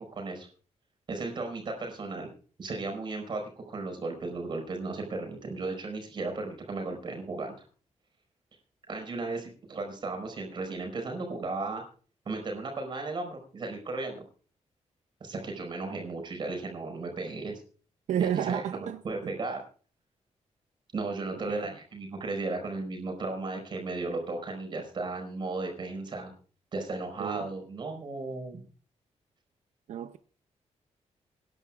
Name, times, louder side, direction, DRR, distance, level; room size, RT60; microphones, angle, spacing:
voice 1, 0.1-0.5 1.1-2.3 2.6-7.6 8.9-11.8 12.2-14.2 15.2-17.6 18.2-19.6 20.9-26.3 26.7-28.6, right 3 dB, 40° right, 4.7 m, -35 dB
voice 2, 18.1-19.0 21.3-21.8 27.2-27.5 29.9-30.2, right 9 dB, 90° right, 0.6 m, -31 dB
26.5 x 11.0 x 2.4 m
wide cardioid pair, 170°, 12 cm